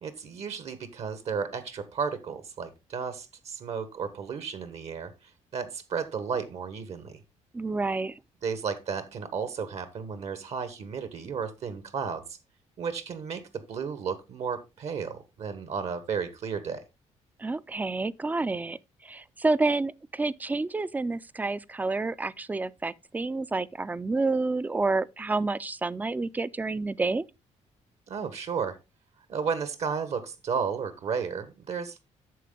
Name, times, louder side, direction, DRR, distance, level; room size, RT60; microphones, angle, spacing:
voice 1, 0.0-7.2 8.4-12.4 12.8-16.8 28.1-28.8 29.3-32.0, right 6 dB, 60° right, 1.3 m, -33 dB
voice 2, 7.5-8.2 17.4-27.2, right 3 dB, 15° right, 0.4 m, -29 dB
9.3 x 6.5 x 3.8 m
cardioid pair, 120°, 12 cm